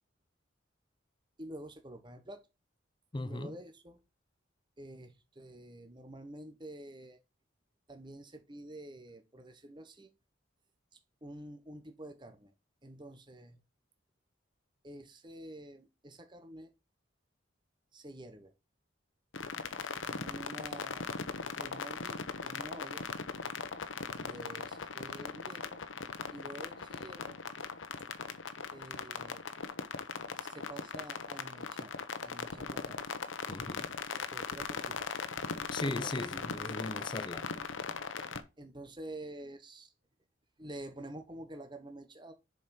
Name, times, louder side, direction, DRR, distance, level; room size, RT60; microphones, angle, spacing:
voice 1, 1.4-2.5 3.2-4.0 4.8-7.2 7.9-10.1 11.2-12.5 12.8-13.6 14.8-16.7 17.9-18.5 19.8-21.1 21.6-23.1 24.1-25.8 26.3-27.4 28.7-29.4 30.4-31.9 32.2-33.1 34.1-35.1 35.8-36.1 38.6-39.9 40.6-42.3, right 1 dB, 25° right, 1.2 m, -48 dB
voice 2, 3.1-3.5 33.5-33.9 35.7-37.5, left 2 dB, 25° left, 0.6 m, -38 dB
sound 1, 19.3-38.4, left 5 dB, 80° left, 0.9 m, -39 dB
7.1 x 5.1 x 4.3 m
head